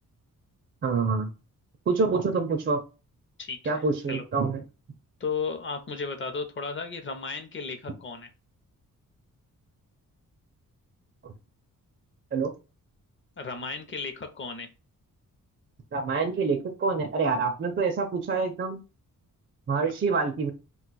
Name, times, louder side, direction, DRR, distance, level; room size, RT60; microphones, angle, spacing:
voice 1, 0.8-1.3 1.9-2.8 3.7-4.6 11.2-11.3 12.3-12.5 15.9-18.8 19.7-20.5, right 4 dB, 35° right, 4 dB, 0.4 m, -26 dB
voice 2, 3.4-4.2 5.2-8.3 13.4-14.7 19.8-19.9, left 4 dB, 35° left, 7 dB, 0.6 m, -34 dB
2.4 x 2.3 x 3.9 m, 0.31 s
wide cardioid pair, 135°, 34 cm